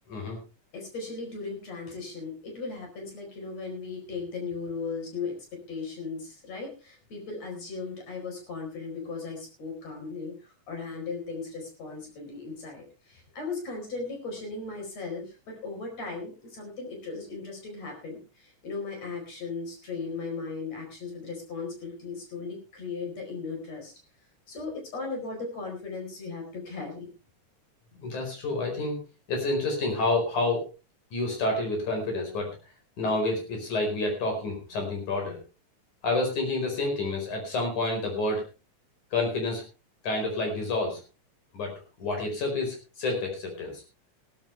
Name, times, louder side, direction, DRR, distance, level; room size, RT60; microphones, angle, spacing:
voice 1, 0.7-23.9 24.5-27.1, left 4 dB, 60° left, 3 dB, 5.8 m, -37 dB
voice 2, 28.0-29.0 29.3-30.7 31.1-32.5 33.0-35.4 36.0-38.5 39.1-39.6 40.0-41.0 41.5-41.7 42.0-43.8, left 2 dB, 85° left, 3 dB, 6.2 m, -29 dB
16.0 x 14.0 x 3.4 m, 0.31 s
omnidirectional pair, 3.3 m